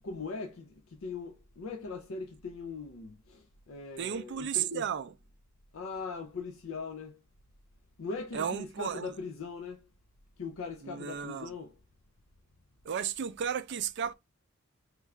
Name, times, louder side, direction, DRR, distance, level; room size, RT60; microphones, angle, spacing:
voice 1, 0.0-0.7 1.0-4.8 5.7-7.2 8.0-9.8 10.4-11.7, left 4 dB, 70° left, 0.5 m, -40 dB
voice 2, 4.0-5.2 8.3-9.2 10.8-11.6 12.8-14.1, right 8 dB, 55° right, 0.4 m, -34 dB
4.5 x 2.4 x 3.1 m
head